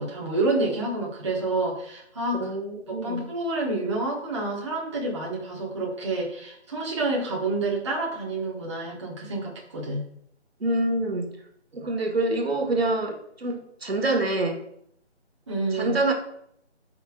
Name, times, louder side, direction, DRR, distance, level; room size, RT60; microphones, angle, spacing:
voice 1, 0.0-2.5 2.9-10.1 15.5-16.0, right 2 dB, 25° right, -3 dB, 1.4 m, -28 dB
voice 2, 2.4-3.2 10.6-11.3 11.7-14.6 15.7-16.1, right 2 dB, 60° right, 3 dB, 1.6 m, -26 dB
13.0 x 5.7 x 2.4 m, 0.70 s
figure-of-eight pair, 170°, 34 cm